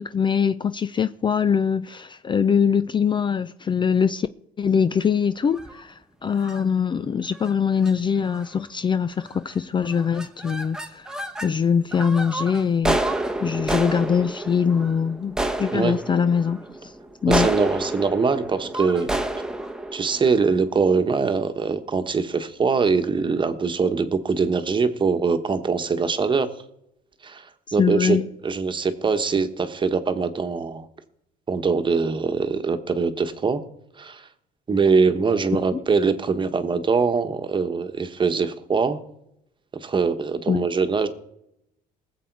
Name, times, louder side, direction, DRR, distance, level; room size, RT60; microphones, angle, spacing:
voice 1, 0.0-4.3 4.6-13.0 13.4-16.9 17.2-17.5 27.8-28.3 35.5-35.8 40.5-40.7, left 7 dB, 30° left, 0.4 m, -23 dB
sound 1, 5.5-5.8 6.4-6.6 7.3-7.5 7.8-7.9 8.3-8.7 9.2-9.6 9.8-11.5 11.9-21.1, right 1 dB, 5° right, 1.1 m, -29 dB
voice 2, 17.3-19.2 19.9-26.5 27.2-28.2 28.4-30.9 31.5-33.6 34.0-34.3 34.7-39.0 39.8-41.1, right 5 dB, 30° right, 1.3 m, -23 dB
19.5 x 7.8 x 4.7 m
cardioid pair, 110°, 17 cm